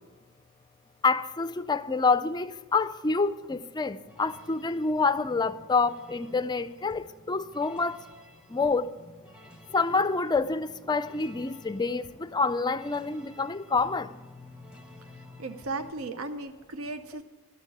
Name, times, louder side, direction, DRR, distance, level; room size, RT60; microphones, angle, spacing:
voice 1, 1.0-8.0 8.5-8.9 9.7-14.1, left 4 dB, 20° left, 0.4 m, -27 dB
sound 1, 4.0-15.9, left 1 dB, 5° right, 1.1 m, -52 dB
voice 2, 15.4-17.2, right 3 dB, 70° right, 0.7 m, -36 dB
12.5 x 6.5 x 9.7 m
head